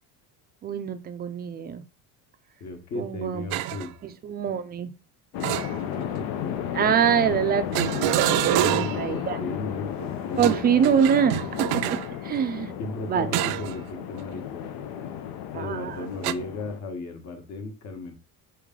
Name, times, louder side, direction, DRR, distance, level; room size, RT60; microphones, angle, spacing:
voice 1, 0.6-1.8 3.0-3.5 4.0-4.9 6.7-7.9 8.4-9.4 10.4-12.0 12.2-12.7 13.1-13.3 15.5-16.0, right 8 dB, 25° right, 10 dB, 0.4 m, -24 dB
voice 2, 2.6-3.9 5.8-6.6 8.6-10.5 12.8-14.8 15.5-18.1, left 3 dB, 50° left, 5 dB, 1.2 m, -35 dB
sound 1, 3.5-3.9 5.4-6.2 7.7-9.1 10.3-12.1 13.3-13.8 14.2-14.4 16.2-16.3, right 14 dB, 80° right, 0.5 m, -26 dB
sound 2, 5.3-16.8, left 9 dB, 80° left, 0.7 m, -33 dB
4.4 x 3.2 x 3.7 m, 0.34 s
cardioid pair, 150°, 36 cm